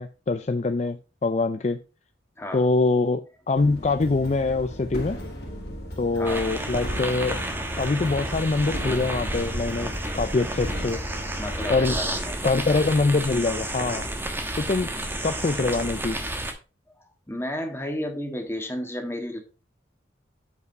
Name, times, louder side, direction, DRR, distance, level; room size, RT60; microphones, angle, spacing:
voice 1, 0.0-1.8 2.5-5.2 6.0-7.4 7.8-11.0 11.7-12.0 12.4-14.1 14.6-14.9 15.2-16.2, left 3 dB, 40° left, 0.4 m, -24 dB
voice 2, 2.4-2.7 6.1-6.5 11.4-12.5 17.3-19.4, left 1 dB, 15° left, 1.6 m, -32 dB
sound 1, 3.5-12.1, equal, 55° left, 2.6 m, -37 dB
sound 2, 6.2-16.5, right 1 dB, 10° right, 1.1 m, -31 dB
8.2 x 4.9 x 4.5 m
head